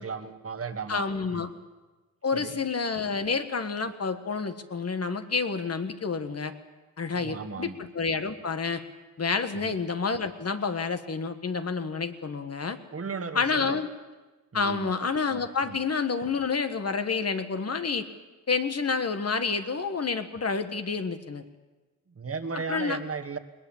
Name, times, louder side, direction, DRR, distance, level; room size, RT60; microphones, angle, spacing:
voice 1, 0.0-1.5 2.3-2.6 7.1-7.8 9.6-9.7 12.9-13.8 14.5-14.9 15.6-15.8 22.1-23.4, right 5 dB, 45° right, 8 dB, 1.5 m, -36 dB
voice 2, 0.9-1.5 2.2-6.5 7.0-8.8 9.2-12.8 13.3-13.9 14.5-18.0 18.5-21.4 22.5-23.0, left 5 dB, 45° left, 9 dB, 1.5 m, -29 dB
21.0 x 20.0 x 7.3 m, 1.2 s
wide cardioid pair, 95°, 33 cm